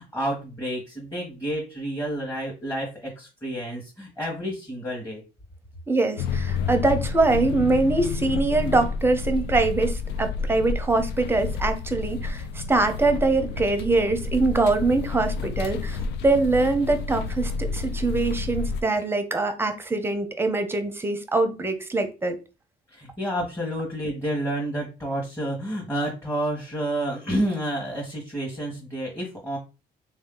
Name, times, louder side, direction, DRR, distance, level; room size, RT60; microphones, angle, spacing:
voice 1, 0.0-5.2 22.9-29.6, right 1 dB, 15° left, -3 dB, 1.3 m, -30 dB
voice 2, 5.9-22.4, right 3 dB, 15° right, 7 dB, 0.7 m, -23 dB
sound 1, 6.2-18.8, left 4 dB, 80° left, 0.4 m, -30 dB
3.6 x 2.7 x 3.7 m, 0.30 s
cardioid pair, 110°, 17 cm